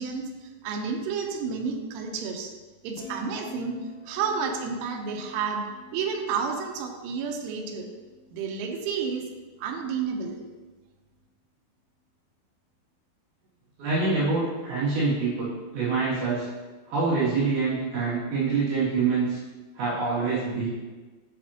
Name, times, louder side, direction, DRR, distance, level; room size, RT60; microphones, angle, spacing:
voice 1, 0.0-2.5 2.8-3.8 4.1-5.7 5.9-7.9 8.3-9.2 9.6-10.4, right 5 dB, 80° right, 3 dB, 3.3 m, -30 dB
sound 1, 3.0-9.3 9.6-9.9, left 2 dB, 85° left, 3.6 m, -48 dB
voice 2, 13.8-16.5 16.9-19.4 19.8-20.7, right 4 dB, 65° right, -11 dB, 4.6 m, -26 dB
11.0 x 6.7 x 2.9 m, 1.3 s
omnidirectional pair, 5.7 m